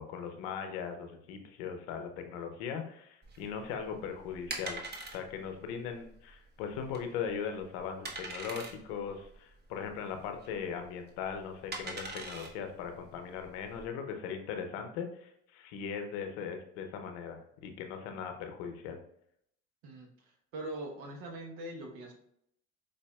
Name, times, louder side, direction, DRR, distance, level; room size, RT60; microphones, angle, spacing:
voice 1, 0.0-4.8 5.1-19.0, left 7 dB, 80° left, 5 dB, 0.7 m, -39 dB
sound 1, 3.2-13.9, right 2 dB, 35° right, 0.9 m, -44 dB
voice 2, 20.5-22.1, right 1 dB, 75° right, 2 dB, 0.9 m, -41 dB
4.8 x 2.5 x 2.2 m, 0.71 s
hypercardioid pair, 65°, 30 cm